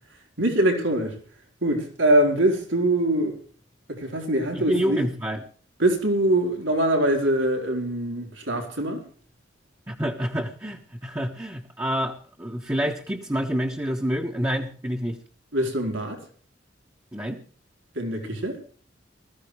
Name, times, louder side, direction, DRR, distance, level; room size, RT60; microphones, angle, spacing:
voice 1, 0.4-1.1 1.6-3.4 3.9-5.0 5.8-9.0 15.5-16.2 18.0-18.6, right 1 dB, 90° right, 3 dB, 4.3 m, -23 dB
voice 2, 4.5-5.4 9.9-15.2 17.1-17.4, equal, 15° right, 0 dB, 1.4 m, -28 dB
20.0 x 14.5 x 3.3 m, 0.43 s
head